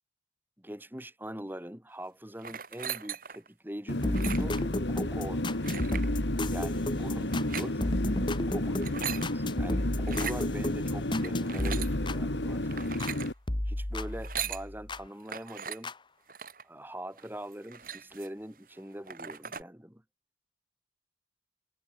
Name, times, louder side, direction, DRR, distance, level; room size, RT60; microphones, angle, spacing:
voice 1, 0.6-4.6 4.9-5.9 6.5-7.8 8.5-13.1 13.7-15.9 16.6-20.0, equal, 10° right, 2.4 m, -43 dB
sound 1, 2.4-3.5 4.0-4.6 5.6-6.1 7.3-7.7 8.6-9.3 10.0-10.4 11.2-11.9 12.7-13.3 14.1-14.6 15.3-15.8 16.3-16.6 17.2-17.3 17.5-18.4 18.8-18.9 19.1-19.6, right 8 dB, 50° right, 4.2 m, -38 dB
sound 2, 3.9-13.3, left 1 dB, 80° left, 2.1 m, -32 dB
sound 3, 4.0-13.2 13.5-15.1 15.8-15.9, left 1 dB, 25° left, 1.1 m, -33 dB
head